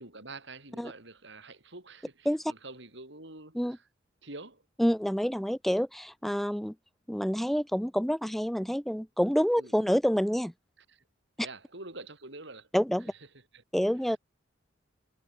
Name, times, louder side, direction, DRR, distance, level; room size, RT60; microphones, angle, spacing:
voice 1, 0.0-3.9 4.2-4.7 9.5-9.9 10.8-11.0 11.4-12.7 13.1-13.3 13.5-13.6 14.0-14.2, right 2 dB, 65° right, 6.6 m, -47 dB
voice 2, 4.8-6.7 7.1-10.5 12.7-13.1 13.7-14.2, equal, ahead, 0.4 m, -27 dB
head